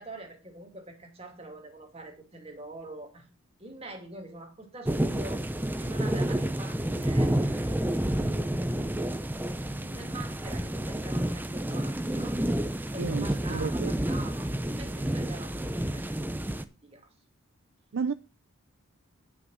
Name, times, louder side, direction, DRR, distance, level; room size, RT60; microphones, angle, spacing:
voice 1, 0.0-3.3 3.6-5.5 5.8-8.2 9.6-12.4 12.9-14.5 14.8-16.6 16.8-17.1, right 2 dB, 25° right, 2.4 m, -45 dB
sound 1, 4.9-16.7, right 1 dB, 10° right, 0.5 m, -29 dB
voice 2, 13.0-13.9 17.9-18.1, right 5 dB, 65° right, 0.4 m, -32 dB
10.5 x 6.1 x 6.1 m
head